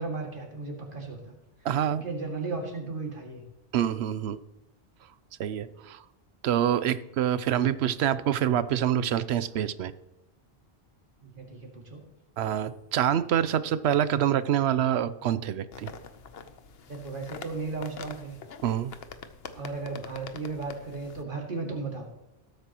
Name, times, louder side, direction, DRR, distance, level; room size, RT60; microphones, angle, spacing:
voice 1, 0.0-1.3 1.9-3.4 11.2-12.0 16.9-18.4 19.5-22.1, right 3 dB, 55° right, 0 dB, 2.4 m, -35 dB
voice 2, 1.6-2.0 3.7-4.4 5.4-6.0 6.4-9.9 12.4-15.9 18.6-18.9, right 10 dB, 90° right, 15 dB, 0.9 m, -26 dB
sound 1, 15.7-21.2, left 6 dB, 70° left, 1.0 m, -45 dB
18.5 x 8.7 x 3.0 m, 0.91 s
omnidirectional pair, 1.1 m